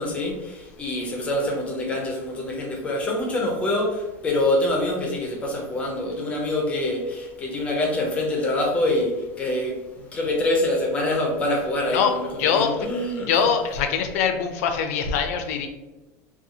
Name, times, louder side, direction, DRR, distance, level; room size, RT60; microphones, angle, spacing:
voice 1, 0.0-13.3, left 1 dB, 15° left, 0 dB, 0.5 m, -25 dB
voice 2, 12.4-12.7 13.2-15.7, left 7 dB, 70° left, 6 dB, 0.4 m, -23 dB
2.7 x 2.3 x 2.6 m, 1.1 s
supercardioid pair, 165°, 8 cm